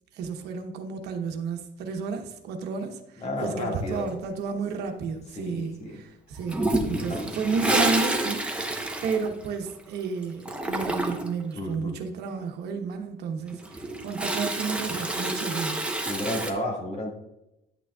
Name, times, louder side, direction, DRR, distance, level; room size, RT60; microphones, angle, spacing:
voice 1, 0.1-8.8 9.0-15.8, right 5 dB, 80° right, 4 dB, 1.1 m, -32 dB
voice 2, 3.2-4.1 5.3-6.0 7.1-7.3 11.6-11.9 16.1-17.1, left 1 dB, 40° left, 0 dB, 2.0 m, -32 dB
Toilet flush, 6.5-10.0 10.2-11.4 13.5-16.5, right 2 dB, 5° right, 0.9 m, -28 dB
10.0 x 6.1 x 2.4 m, 0.87 s
cardioid pair, 110°, 17 cm